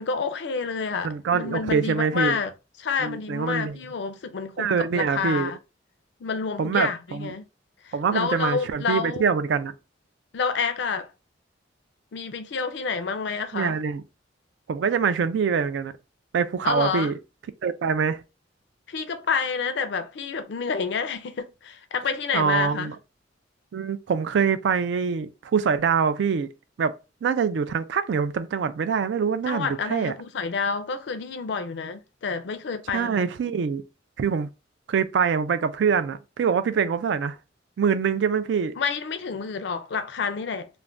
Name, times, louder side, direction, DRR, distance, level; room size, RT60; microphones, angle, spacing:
voice 1, 0.0-2.5 2.8-5.6 6.2-7.5 7.8-9.2 10.3-11.1 12.1-13.8 16.6-17.1 18.9-22.9 29.5-33.3 38.8-40.7, left 5 dB, 65° left, 0.4 m, -29 dB
voice 2, 1.0-2.4 3.0-3.8 4.6-5.5 6.6-7.4 7.9-9.7 13.5-14.0 14.7-15.9 16.3-17.2 17.6-18.2 22.3-23.0 23.7-26.5 26.8-26.9 27.2-30.1 32.9-33.8 34.2-34.5 34.9-37.4 37.8-38.8, right 6 dB, 70° right, 0.3 m, -24 dB
2.5 x 2.1 x 3.2 m
head